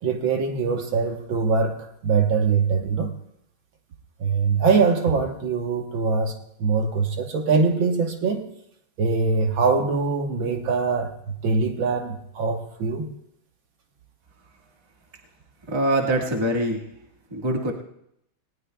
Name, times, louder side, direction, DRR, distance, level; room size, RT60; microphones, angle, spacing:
voice 1, 0.0-3.1 4.2-8.5 9.0-13.1, right 4 dB, 65° right, 1.8 m, -23 dB
voice 2, 15.7-16.8 17.3-17.7, right 1 dB, 15° right, 1.2 m, -23 dB
19.0 x 18.5 x 2.3 m
omnidirectional pair, 2.4 m